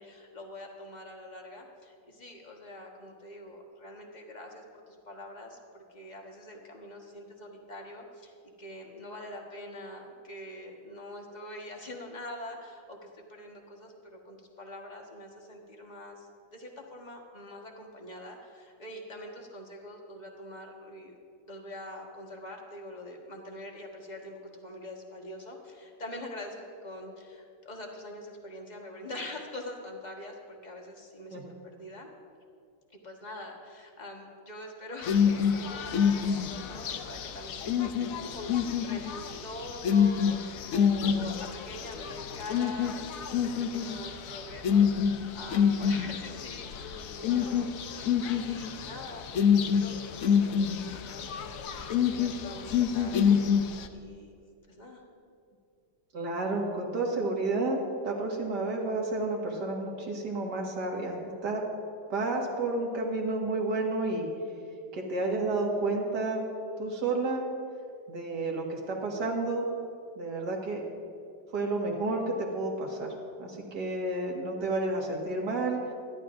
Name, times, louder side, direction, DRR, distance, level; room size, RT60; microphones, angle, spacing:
voice 1, 0.0-21.2 21.5-31.4 31.7-32.1 33.0-53.5 53.9-54.4 54.7-55.0, left 1 dB, 25° left, 0 dB, 1.4 m, -44 dB
sound 1, 35.0-53.9, left 7 dB, 65° left, 0.8 m, -27 dB
voice 2, 56.1-57.8 58.0-61.6 62.1-64.3 64.9-66.5 66.8-67.4 68.1-69.7 70.2-70.8 71.5-73.1 73.4-75.8, right 2 dB, 60° right, 0 dB, 2.3 m, -31 dB
25.5 x 11.5 x 2.6 m, 2.4 s
omnidirectional pair, 2.1 m